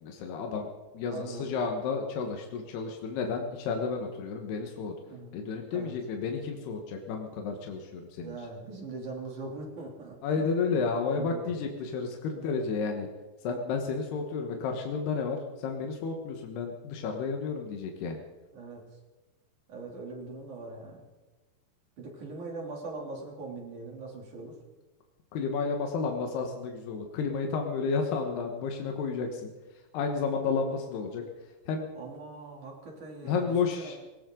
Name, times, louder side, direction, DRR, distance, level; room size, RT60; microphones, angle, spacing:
voice 1, 0.0-0.7 0.9-4.9 5.3-8.4 10.2-13.1 13.4-18.2 25.3-29.5 29.9-31.2 31.7-31.9 33.2-34.1, left 5 dB, 80° left, 3 dB, 3.5 m, -31 dB
voice 2, 1.1-1.6 5.1-5.4 5.7-6.0 8.2-10.5 11.1-11.5 12.3-12.6 18.5-18.8 19.7-21.0 22.0-24.6 31.9-34.0, right 3 dB, 50° right, -1 dB, 4.3 m, -41 dB
19.5 x 19.0 x 3.9 m, 1.1 s
omnidirectional pair, 4.7 m